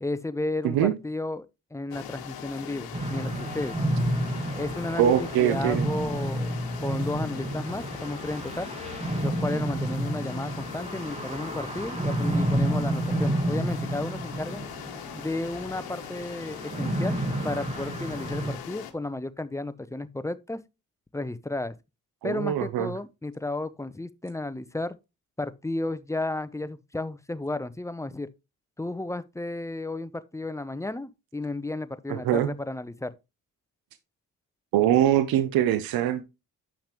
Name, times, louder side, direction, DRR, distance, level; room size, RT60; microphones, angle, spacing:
voice 1, 0.0-3.8 4.6-6.6 6.8-8.7 9.2-14.6 15.1-20.6 21.1-21.8 22.2-25.0 25.4-28.3 28.8-33.1, left 2 dB, 10° left, 0.6 m, -33 dB
sound 1, 1.9-18.9, left 9 dB, 80° left, 1.1 m, -41 dB
sound 2, 2.9-18.6, right 1 dB, 15° right, 1.3 m, -30 dB
voice 2, 5.0-5.9 22.2-22.9 32.1-32.5 34.7-36.2, right 11 dB, 75° right, 0.7 m, -23 dB
8.5 x 5.8 x 2.9 m
supercardioid pair, 55°, 36 cm